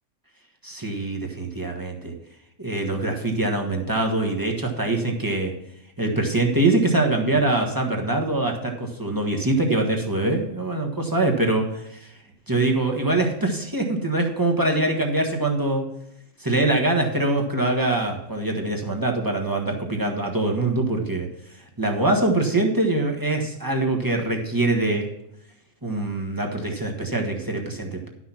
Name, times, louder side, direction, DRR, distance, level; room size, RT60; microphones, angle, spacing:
voice 1, 0.6-2.1 2.6-5.5 6.0-12.1 12.5-15.8 16.4-21.3 21.8-25.1 25.8-28.1, right 2 dB, 15° right, 0 dB, 1.4 m, -23 dB
11.5 x 6.2 x 5.8 m, 0.80 s
omnidirectional pair, 1.3 m